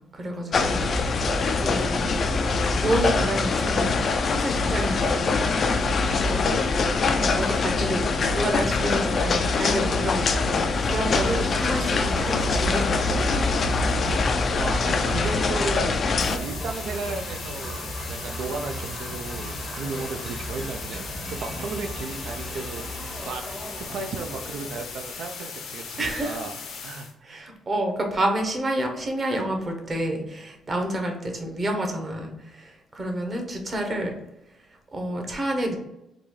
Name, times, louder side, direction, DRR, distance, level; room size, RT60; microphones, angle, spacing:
voice 1, 0.0-2.1 2.8-5.9 6.2-6.6 7.2-13.2 26.0-26.4 27.2-34.1 34.7-35.8, right 1 dB, 35° right, 2 dB, 0.9 m, -29 dB
sound 1, 0.5-16.4, left 4 dB, 50° left, 0.4 m, -23 dB
sound 2, 10.7-25.4, right 1 dB, ahead, 0.7 m, -37 dB
voice 2, 14.5-16.0 16.3-22.8 23.2-23.5 23.8-27.5, right 4 dB, 75° right, 5 dB, 0.4 m, -35 dB
sound 3, 16.2-27.1, left 5 dB, 80° left, 0.8 m, -38 dB
3.9 x 2.3 x 3.1 m, 0.90 s
cardioid pair, 90°, 0 cm